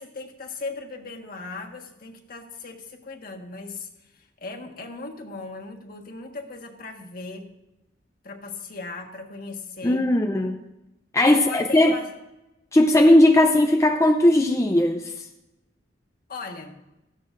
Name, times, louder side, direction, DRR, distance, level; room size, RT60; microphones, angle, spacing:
voice 1, 0.0-3.9 4.1-7.5 8.2-10.1 11.5-12.1 16.3-16.8, left 3 dB, 55° left, 2 dB, 1.5 m, -37 dB
voice 2, 9.8-10.6 11.1-11.9 12.7-15.1, left 1 dB, 15° left, 3 dB, 0.5 m, -18 dB
16.5 x 14.0 x 2.5 m, 0.96 s
head